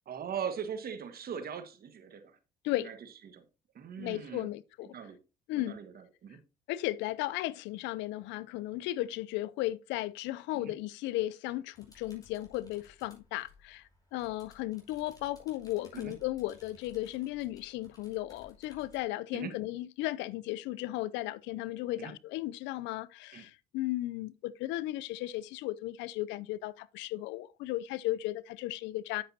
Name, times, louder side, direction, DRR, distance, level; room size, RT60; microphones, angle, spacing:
voice 1, 0.1-2.3 2.8-2.9 3.3-3.4 3.7-4.5 4.9-5.2 5.5-6.4 10.5-10.7 15.9-16.1 19.3-19.5 22.0-22.1 23.3-23.5, right 7 dB, 55° right, 1.6 m, -40 dB
voice 2, 4.0-4.9 5.5-5.8 6.7-29.2, left 16 dB, 75° left, 0.5 m, -35 dB
sound 1, 11.7-19.0, left 3 dB, 20° left, 4.9 m, -60 dB
9.5 x 7.4 x 2.8 m
supercardioid pair, 65°, 19 cm